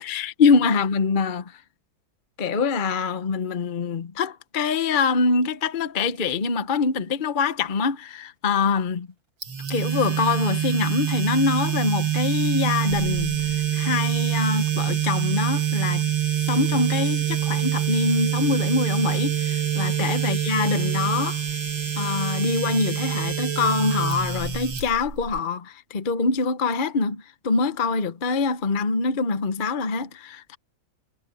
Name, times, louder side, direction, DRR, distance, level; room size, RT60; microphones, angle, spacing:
voice 1, 0.0-1.5 2.4-9.1 9.7-16.1 16.5-21.4 22.0-30.6, left 4 dB, 40° left, 0.8 m, -24 dB
sound 1, 9.4-25.4, right 10 dB, 70° right, 3.3 m, -25 dB
omnidirectional pair, 2.2 m